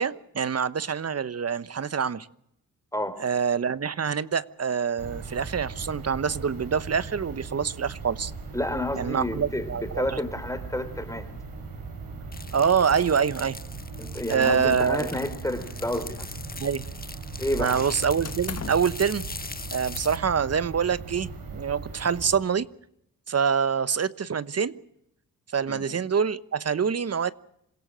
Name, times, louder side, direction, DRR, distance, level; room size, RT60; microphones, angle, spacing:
voice 1, 0.0-2.3 3.2-8.3 9.0-10.2 12.5-13.6 14.3-15.1 16.6-16.8 17.6-19.2 19.7-22.7 23.3-24.8 25.5-27.3, right 6 dB, 45° right, 16 dB, 1.2 m, -25 dB
voice 2, 2.9-3.2 8.5-11.3 14.0-16.3 17.4-17.8 25.7-25.8, left 1 dB, 10° left, 9 dB, 3.5 m, -30 dB
sound 1, 5.0-22.4, right 4 dB, 90° right, 6.3 m, -39 dB
sound 2, 12.3-20.2, left 3 dB, 25° left, 1.6 m, -41 dB
sound 3, 15.1-15.9 16.2-17.1 18.2-19.0, left 6 dB, 45° left, 1.8 m, -41 dB
27.0 x 16.5 x 7.6 m, 0.76 s
cardioid pair, 60°, 34 cm